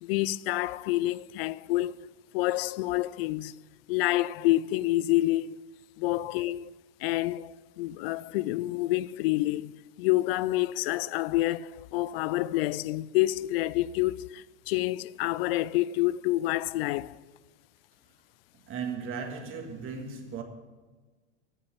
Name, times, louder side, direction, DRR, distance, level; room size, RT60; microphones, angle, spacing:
voice 1, 0.0-2.1 2.3-3.6 3.9-5.6 6.0-6.7 7.0-17.2, left 17 dB, 55° left, 0.5 m, -28 dB
voice 2, 18.7-20.4, right 6 dB, 35° right, 1.9 m, -36 dB
11.5 x 6.6 x 9.5 m
hypercardioid pair, 90°, 35 cm